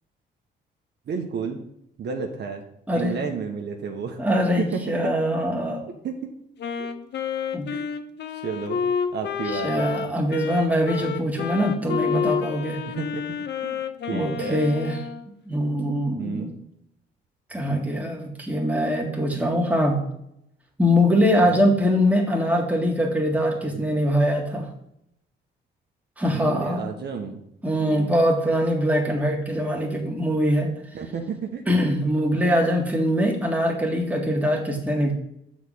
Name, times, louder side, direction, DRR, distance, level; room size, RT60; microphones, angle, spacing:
voice 1, 1.1-1.6 2.0-2.6 2.9-4.2 4.6-5.1 5.8-6.1 6.8-6.9 7.7-7.8 8.4-8.8 9.1-9.8 12.8-13.2 13.6-13.8 14.1-14.7 16.1-16.5 21.4-21.6 23.7-23.8 26.3-27.4 27.7-28.1 30.9-31.6, right 6 dB, 60° right, 3 dB, 1.0 m, -31 dB
voice 2, 4.2-5.8 7.5-7.7 9.5-12.8 14.1-15.0 15.5-16.5 17.5-20.0 20.8-24.7 26.2-26.9 27.6-30.7 31.7-35.1, equal, 5° right, 0 dB, 1.8 m, -23 dB
Wind instrument woodwind instrument, 6.6-15.3, left 6 dB, 60° left, 0.7 m, -29 dB
6.5 x 4.2 x 6.2 m, 0.77 s
cardioid pair, 90°, 20 cm